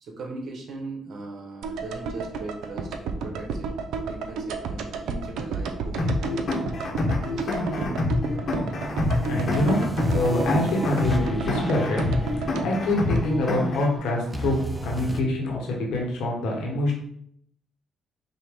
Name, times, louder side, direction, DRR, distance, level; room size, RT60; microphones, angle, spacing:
voice 1, 0.0-3.7 4.0-6.3 7.3-8.2, right 2 dB, 65° right, 1 dB, 0.9 m, -39 dB
sound 1, 1.6-13.8 14.1-14.2, right 4 dB, 85° right, 0.4 m, -33 dB
sound 2, 6.0-14.0, left 2 dB, 50° left, 0.9 m, -27 dB
sound 3, 8.1-15.2, right 1 dB, 10° right, 0.5 m, -34 dB
voice 2, 8.8-9.8 10.1-17.0, left 1 dB, 85° left, -1 dB, 1.2 m, -26 dB
5.5 x 2.1 x 3.5 m, 0.67 s
cardioid pair, 90°, 0 cm